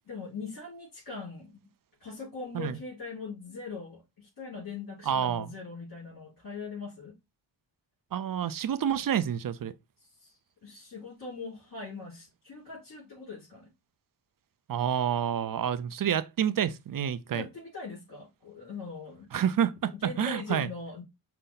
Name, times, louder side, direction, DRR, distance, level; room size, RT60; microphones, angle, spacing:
voice 1, 0.1-1.7 2.0-7.1 10.0-13.7 17.3-19.3 19.9-21.0, left 4 dB, 45° left, 3.1 m, -41 dB
voice 2, 5.1-5.6 8.1-9.7 14.7-17.4 19.3-20.7, right 9 dB, 45° right, 0.5 m, -28 dB
5.5 x 2.1 x 3.8 m
cardioid pair, 65°, 47 cm